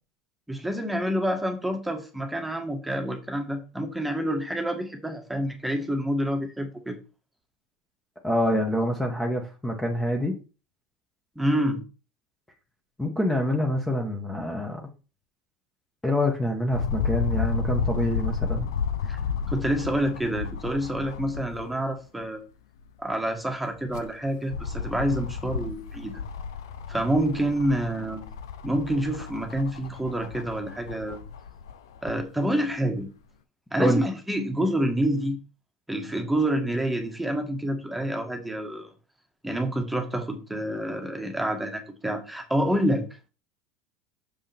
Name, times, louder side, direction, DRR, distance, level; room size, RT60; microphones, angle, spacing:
voice 1, 0.5-7.0 11.3-11.8 19.1-19.2 19.5-22.4 23.0-26.2 26.9-28.2 28.6-31.2 32.0-33.1 33.7-35.4 35.9-38.9 39.4-43.0, right 1 dB, 5° right, 3 dB, 1.5 m, -27 dB
voice 2, 8.2-10.4 13.0-14.8 16.0-18.7 33.8-34.0, equal, 10° left, 2 dB, 1.3 m, -26 dB
sound 1, 16.7-21.8 22.2-22.3 23.6-32.2 33.0-33.1, left 6 dB, 85° left, 0.6 m, -32 dB
6.7 x 5.3 x 3.5 m, 0.33 s
supercardioid pair, 95°, 2 cm